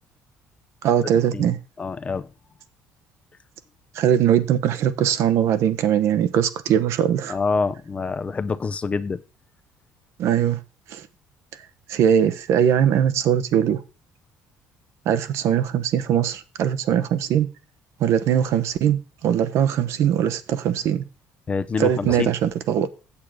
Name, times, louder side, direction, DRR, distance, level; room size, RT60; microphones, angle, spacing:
voice 1, 0.8-1.6 3.9-7.4 10.2-10.6 10.9-11.1 11.9-13.8 15.1-17.5 18.0-21.1 21.8-22.9, right 9 dB, 65° right, 0.9 m, -21 dB
voice 2, 1.3-2.3 7.3-9.2 21.5-22.3, left 4 dB, 25° left, 0.5 m, -26 dB
8.6 x 7.5 x 4.9 m
cardioid pair, 135°, 5 cm